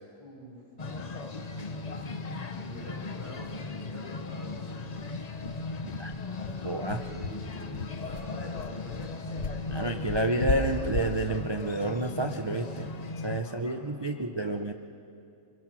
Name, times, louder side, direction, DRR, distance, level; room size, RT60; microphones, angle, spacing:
voice 1, 0.2-2.0 2.5-5.0 5.4-5.7 6.6-10.0 13.1-14.5, equal, 70° left, -5 dB, 8.4 m, -47 dB
sound 1, 0.8-13.4, left 3 dB, 35° left, 0.7 m, -37 dB
sound 2, 2.6-2.7 3.0-3.1 3.4-3.6 3.9-4.0 4.5-12.9, left 4 dB, 50° left, 1.4 m, -36 dB
voice 2, 6.6-7.0 9.7-12.9 13.2-14.7, right 2 dB, 40° right, 5 dB, 0.3 m, -30 dB
26.0 x 22.5 x 6.3 m, 2.6 s
omnidirectional pair, 1.7 m